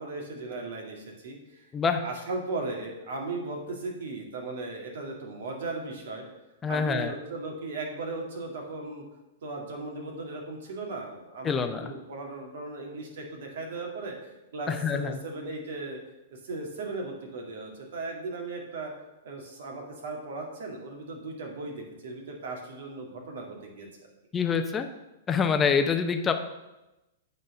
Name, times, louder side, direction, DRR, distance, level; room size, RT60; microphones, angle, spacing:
voice 1, 0.0-1.7 2.0-6.2 6.7-9.0 9.4-11.5 11.8-14.2 14.5-16.0 16.3-18.9 19.2-23.9, right 3 dB, 70° right, 1 dB, 2.1 m, -37 dB
voice 2, 1.7-2.0 6.6-7.1 11.4-11.9 14.7-15.2 24.3-24.9 25.3-26.3, left 6 dB, 20° left, 7 dB, 0.7 m, -26 dB
8.8 x 4.1 x 6.5 m, 0.99 s
hypercardioid pair, 115°, 0 cm